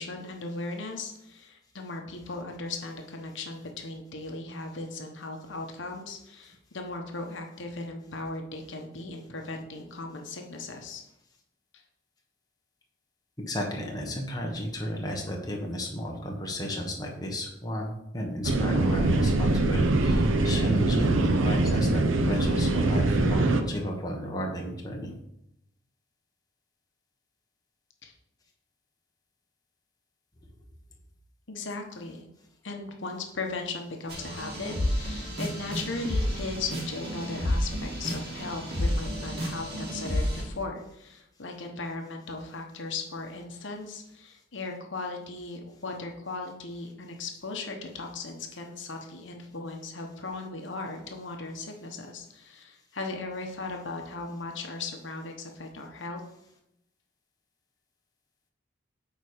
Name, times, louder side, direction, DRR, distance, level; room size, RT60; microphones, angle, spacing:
voice 1, 0.0-11.0 28.0-28.1 31.5-32.3 32.6-56.2, left 3 dB, 70° left, 3 dB, 1.0 m, -37 dB
voice 2, 13.5-25.1, equal, 20° left, 0 dB, 1.1 m, -33 dB
sound 1, 18.4-23.6, right 2 dB, 80° right, 0.8 m, -23 dB
sound 2, 34.1-40.4, equal, 55° right, 2.3 m, -31 dB
9.1 x 4.1 x 5.0 m, 0.83 s
head